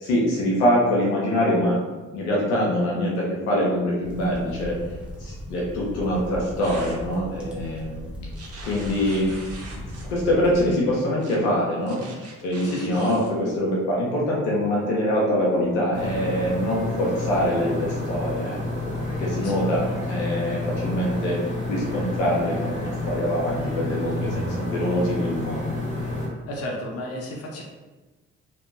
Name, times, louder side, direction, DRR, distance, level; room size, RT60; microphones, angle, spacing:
voice 1, 0.0-1.8 2.1-4.8 5.2-8.1 8.6-9.3 10.0-21.4 21.7-25.7, equal, 90° left, -4 dB, 0.5 m, -24 dB
sound 1, 4.0-10.6, equal, 5° right, 0.7 m, -38 dB
sound 2, 6.6-7.0 8.3-10.1 11.2-11.4 11.9-13.3, right 3 dB, 45° right, 0.6 m, -42 dB
voice 2, 12.6-13.0 19.4-19.6 26.5-27.6, left 1 dB, 45° left, -1 dB, 0.6 m, -33 dB
sound 3, 15.9-26.3, left 2 dB, 20° left, 1.1 m, -30 dB
2.6 x 2.1 x 2.5 m, 1.2 s
hypercardioid pair, 40°, 35 cm